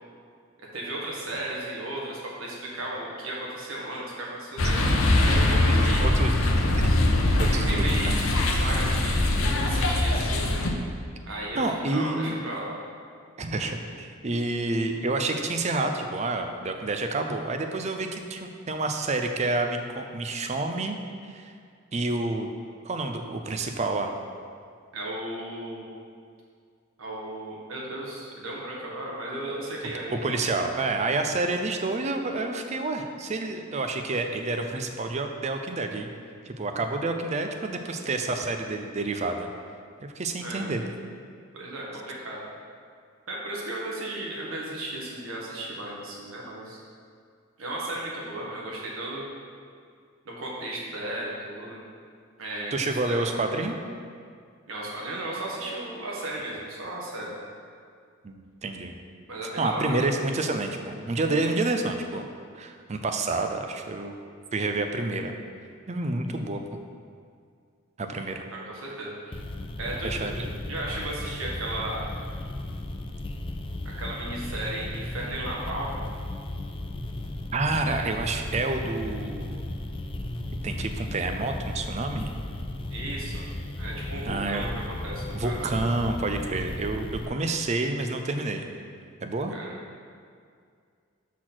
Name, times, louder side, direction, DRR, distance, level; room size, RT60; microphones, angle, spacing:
voice 1, 0.6-6.0 7.4-9.3 9.7-10.6 11.3-12.7 24.9-25.8 27.0-30.2 40.4-40.7 41.5-42.4 43.3-46.8 47.6-49.2 50.2-51.8 52.4-53.3 54.7-57.3 59.3-59.9 68.5-69.4 69.8-70.3 70.6-72.1 73.8-76.0 82.9-83.4 83.8-85.6 89.5-89.7, right 1 dB, 85° right, -3 dB, 1.5 m, -35 dB
sound 1, 4.6-10.7, left 1 dB, 85° left, 0.8 m, -22 dB
voice 2, 5.7-6.3 6.7-6.9 7.4-8.2 11.5-12.3 13.4-21.0 21.3-21.5 21.9-22.5 22.8-24.1 30.1-36.1 36.5-39.5 40.2-40.8 52.7-53.8 58.2-58.9 59.6-62.3 62.6-64.1 64.5-65.3 65.9-66.8 68.0-68.4 70.0-70.5 77.5-79.7 80.6-82.3 84.3-84.7 85.3-88.6 89.2-89.5, right 2 dB, 35° right, 5 dB, 0.5 m, -29 dB
sound 2, 69.3-87.3, left 1 dB, 25° left, 0.4 m, -35 dB
6.2 x 4.2 x 6.0 m, 2.2 s
head